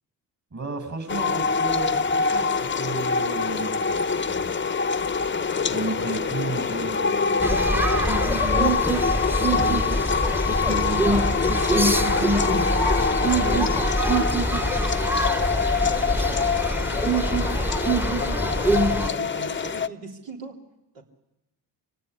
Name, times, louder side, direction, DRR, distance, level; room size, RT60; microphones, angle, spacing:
voice 1, 0.5-4.0 4.3-4.5 5.7-8.7 9.4-9.9 10.4-12.7 13.0-13.9 17.9-18.6, right 3 dB, 40° right, 7 dB, 7.5 m, -34 dB
sound 1, 1.1-19.9, left 5 dB, 25° left, 0.8 m, -25 dB
sound 2, 7.4-19.1, right 1 dB, 5° right, 1.0 m, -24 dB
voice 2, 15.3-16.6 19.1-20.6 20.9-21.0, right 3 dB, 80° right, 2 dB, 3.7 m, -40 dB
24.5 x 17.0 x 9.8 m, 0.96 s
supercardioid pair, 60°, 43 cm